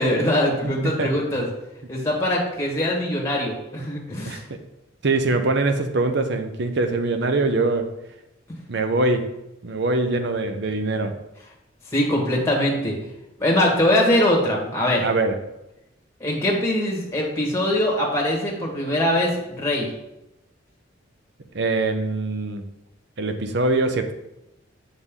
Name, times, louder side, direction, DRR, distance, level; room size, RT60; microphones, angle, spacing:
voice 1, 0.0-1.5 1.9-4.4 11.9-13.0 13.4-15.1 16.2-19.9, left 1 dB, 15° left, -2 dB, 1.7 m, -22 dB
voice 2, 0.6-1.1 4.2-4.4 5.0-7.9 8.7-9.4 9.6-11.2 15.0-15.4 21.5-22.6 23.2-24.1, right 2 dB, 60° right, 7 dB, 0.7 m, -23 dB
6.6 x 6.2 x 3.7 m, 0.90 s
head